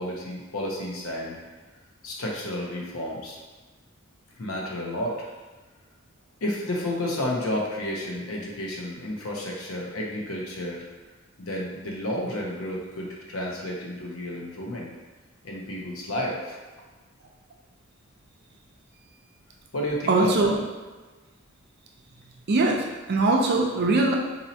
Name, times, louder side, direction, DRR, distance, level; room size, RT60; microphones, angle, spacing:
voice 1, 0.0-1.4 2.0-3.4 4.4-5.3 6.4-10.8 11.4-14.9 15.4-16.6 19.7-20.5, left 1 dB, 90° left, -2 dB, 0.8 m, -31 dB
voice 2, 20.1-20.6 22.5-24.1, right 2 dB, 50° right, 0 dB, 0.5 m, -21 dB
4.2 x 2.7 x 2.8 m, 1.3 s
head